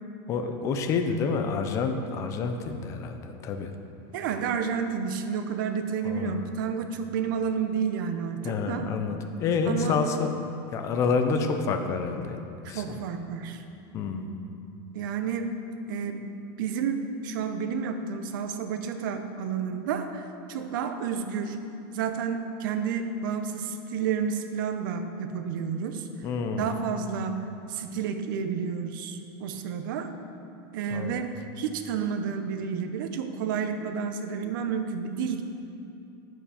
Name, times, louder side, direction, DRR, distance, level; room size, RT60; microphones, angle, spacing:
voice 1, 0.3-3.7 6.0-6.4 8.4-10.3 10.7-12.4 12.7-13.0 13.9-14.3 26.2-26.7 30.9-31.3, left 5 dB, 25° left, 6 dB, 0.6 m, -28 dB
voice 2, 4.1-8.9 9.7-10.0 12.6-13.6 14.9-15.5 15.9-21.6 21.9-26.1 26.6-27.4 27.7-30.1 30.7-35.4, right 6 dB, 60° right, 7 dB, 0.8 m, -30 dB
9.7 x 7.6 x 5.0 m, 2.6 s
supercardioid pair, 170°, 12 cm